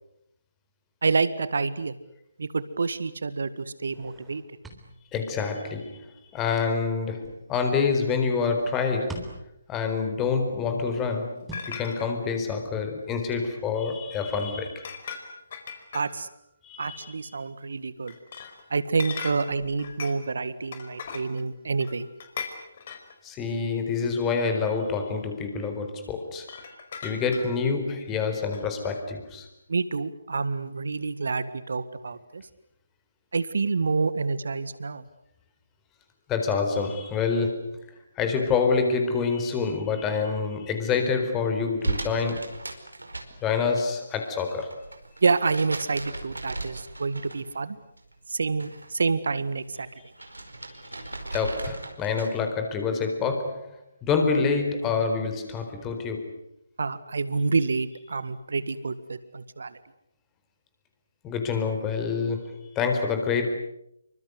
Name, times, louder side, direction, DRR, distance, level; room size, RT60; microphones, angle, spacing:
voice 1, 1.0-1.9 2.4-4.4 15.9-16.3 16.8-18.1 18.7-22.1 29.7-32.5 33.3-35.0 45.2-47.8 48.3-49.9 56.8-59.8, right 4 dB, 65° right, 14 dB, 1.7 m, -28 dB
sound 1, 3.9-5.3 6.0-7.4 8.4-9.8 10.6-11.8 13.0-14.0, right 2 dB, 5° right, 3.8 m, -46 dB
voice 2, 5.1-9.3 9.7-14.9 16.6-17.1 23.2-26.5 27.0-29.5 36.3-42.5 43.4-44.8 51.3-56.3 61.2-63.5, left 5 dB, 15° left, 6 dB, 4.5 m, -27 dB
sound 2, 11.5-12.1 14.4-14.5 14.8-16.4 18.1-18.6 19.0-20.3 20.7-21.5 21.8-23.1 24.1-24.2 26.4-27.7 28.5-28.6, left 6 dB, 45° left, 4.9 m, -39 dB
sound 3, 41.8-43.8 44.1-47.6 48.0-48.9 49.3-52.5, right 2 dB, 85° right, 5.0 m, -37 dB
27.5 x 25.0 x 8.2 m, 0.79 s
figure-of-eight pair, 145°, 0 cm